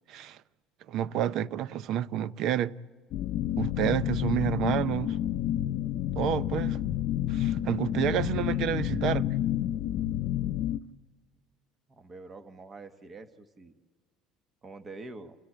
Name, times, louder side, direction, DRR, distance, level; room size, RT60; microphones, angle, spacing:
voice 1, 0.9-2.7 3.6-5.2 6.2-6.8 7.3-9.2, right 10 dB, 50° right, 0.5 m, -29 dB
sound 1, 3.1-10.8, left 12 dB, 55° left, 0.6 m, -29 dB
voice 2, 11.9-13.7 14.6-15.4, right 3 dB, 20° right, 1.2 m, -45 dB
29.0 x 13.5 x 8.7 m
cardioid pair, 145°, 0 cm